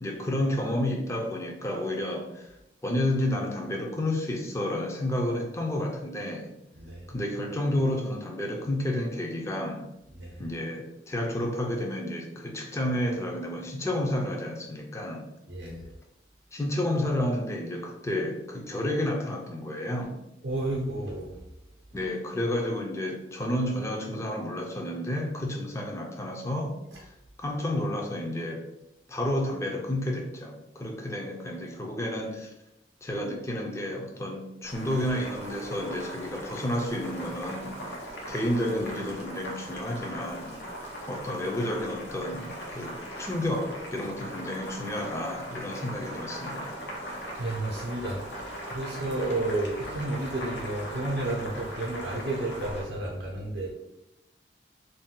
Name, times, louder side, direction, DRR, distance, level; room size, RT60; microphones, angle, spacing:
voice 1, 0.0-2.6 2.8-6.5 7.1-9.9 10.4-15.3 16.5-20.2 21.9-28.6 29.1-32.5 33.0-37.8 38.3-40.8 41.1-46.8, left 1 dB, 15° left, 1 dB, 0.4 m, -31 dB
voice 2, 15.5-15.9 20.4-21.4 47.4-53.7, right 2 dB, 70° right, -4 dB, 0.6 m, -32 dB
Boiling, 34.6-52.8, equal, 90° left, 0.8 m, -39 dB
2.6 x 2.2 x 3.6 m, 0.87 s
head